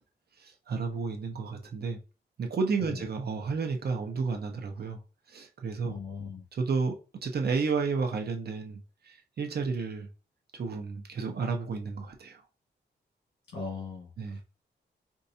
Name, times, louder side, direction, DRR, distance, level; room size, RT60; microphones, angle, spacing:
voice 1, 0.4-2.0 2.4-5.0 5.3-6.0 6.5-7.0 7.2-10.1 10.5-12.4 14.2-14.4, right 4 dB, 60° right, 0.8 m, -32 dB
voice 2, 5.9-6.4 13.5-14.4, left 5 dB, 90° left, 1.5 m, -39 dB
4.6 x 2.6 x 2.7 m
wide cardioid pair, 160°, 19 cm